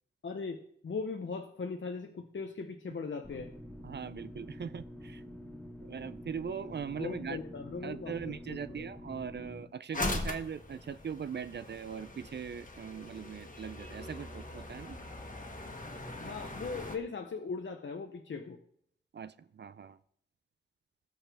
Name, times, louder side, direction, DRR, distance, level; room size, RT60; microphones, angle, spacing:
voice 1, 0.2-3.5 6.9-8.9 16.2-18.6, left 4 dB, 75° left, 5 dB, 0.8 m, -39 dB
sound 1, 3.2-9.6, equal, 10° left, 2.0 m, -47 dB
voice 2, 3.8-5.2 5.9-7.4 7.8-15.0 19.1-20.0, right 7 dB, 60° right, 15 dB, 0.4 m, -40 dB
sound 2, 9.9-17.0, left 2 dB, 45° left, 1.5 m, -41 dB
19.0 x 6.5 x 3.4 m, 0.69 s
wide cardioid pair, 75°, 20 cm